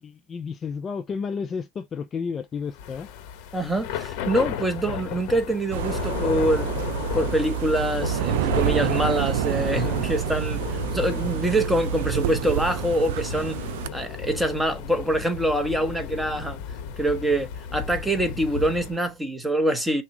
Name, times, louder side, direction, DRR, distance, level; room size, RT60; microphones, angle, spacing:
voice 1, 0.0-3.1, left 5 dB, 25° left, 0.5 m, -32 dB
Thunder / Rain, 2.7-19.0, left 8 dB, 60° left, 1.1 m, -33 dB
voice 2, 3.5-6.7 7.1-13.6 13.9-16.6 17.0-20.0, right 1 dB, 5° right, 1.2 m, -25 dB
sound 1, 5.7-13.9, right 14 dB, 75° right, 0.4 m, -28 dB
6.0 x 2.4 x 3.0 m
supercardioid pair, 130°, 0 cm